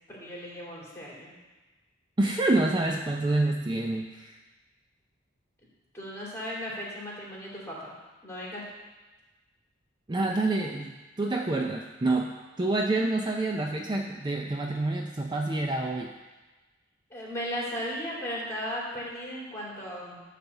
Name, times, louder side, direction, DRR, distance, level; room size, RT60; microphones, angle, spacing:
voice 1, 0.1-1.3 5.9-7.9 8.2-8.6 17.1-20.2, equal, 15° left, -5 dB, 2.8 m, -36 dB
voice 2, 2.2-4.4 10.1-16.1, right 2 dB, 25° right, 2 dB, 0.4 m, -27 dB
11.0 x 4.1 x 6.9 m, 1.2 s
head